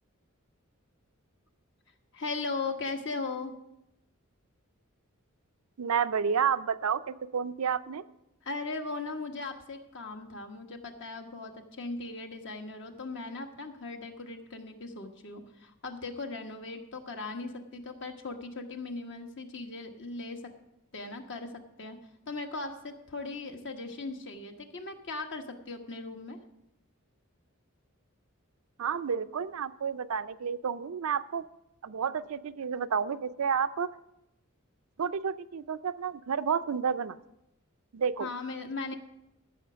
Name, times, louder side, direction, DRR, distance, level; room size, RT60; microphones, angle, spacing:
voice 1, 2.1-3.5 8.4-20.5 20.9-21.5 21.8-22.0 22.3-26.4 38.2-39.0, left 3 dB, 55° left, 5 dB, 1.2 m, -38 dB
voice 2, 5.8-8.0 28.8-31.4 31.8-33.9 35.0-37.1 37.9-38.3, right 7 dB, 85° right, 12 dB, 0.5 m, -30 dB
14.0 x 5.9 x 6.2 m, 0.86 s
head